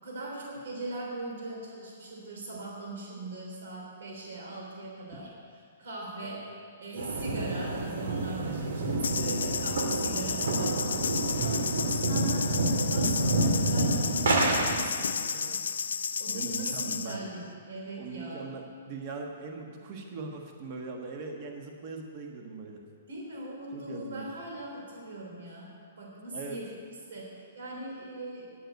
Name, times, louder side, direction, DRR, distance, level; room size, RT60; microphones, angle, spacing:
voice 1, 0.0-5.3 5.8-6.5 6.8-15.6 16.2-18.4 23.1-28.5, right 2 dB, 70° right, -2 dB, 3.5 m, -40 dB
sound 1, 7.0-14.8, right 2 dB, 85° right, 2.1 m, -28 dB
sound 2, 9.0-17.2, left 6 dB, 85° left, 0.4 m, -32 dB
voice 2, 16.3-17.2 18.0-22.8 23.7-24.3 26.3-26.6, right 4 dB, 30° right, 2 dB, 1.3 m, -40 dB
9.4 x 7.8 x 9.1 m, 2.3 s
hypercardioid pair, 170°, 0 cm